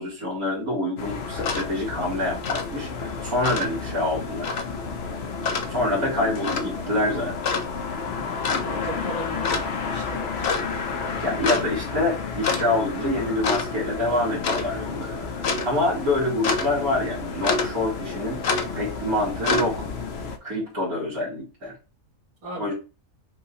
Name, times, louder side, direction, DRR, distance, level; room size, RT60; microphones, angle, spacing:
voice 1, 0.0-4.5 5.7-7.3 11.2-18.4 18.7-19.8 20.4-21.7 22.6-22.7, left 1 dB, 80° right, -4 dB, 2.6 m, -26 dB
sound 1, 1.0-20.4, left 4 dB, 60° left, 0.7 m, -29 dB
voice 2, 8.6-10.6 22.4-22.7, equal, 65° right, -5 dB, 1.9 m, -37 dB
5.4 x 2.2 x 4.0 m, 0.32 s
omnidirectional pair, 1.5 m